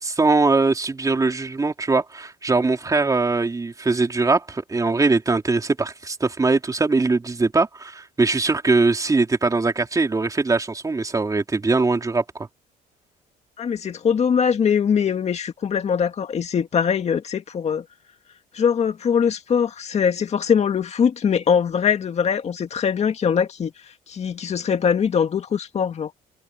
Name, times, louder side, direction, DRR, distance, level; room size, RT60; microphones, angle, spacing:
voice 1, 0.0-12.5, right 3 dB, 20° right, 3.6 m, -21 dB
voice 2, 13.6-17.8 18.5-23.7 24.1-26.1, left 7 dB, 40° left, 2.0 m, -22 dB
cardioid pair, 110°, 17 cm